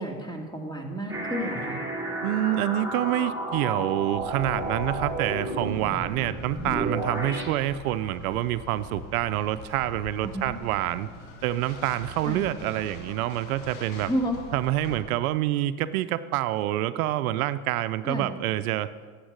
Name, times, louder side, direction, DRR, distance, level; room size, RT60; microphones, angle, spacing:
voice 1, 0.0-1.8 10.2-10.6 12.2-12.4 14.1-14.4 18.0-18.3, equal, 10° left, 1 dB, 2.4 m, -31 dB
sound 1, 1.1-7.4, right 1 dB, 5° right, 3.9 m, -32 dB
voice 2, 2.2-11.1 11.4-14.1 14.5-18.9, right 14 dB, 85° right, 14 dB, 0.6 m, -27 dB
sound 2, 4.2-15.0, left 3 dB, 90° left, 1.7 m, -42 dB
8.7 x 7.9 x 8.0 m, 1.5 s
hypercardioid pair, 80°, 42 cm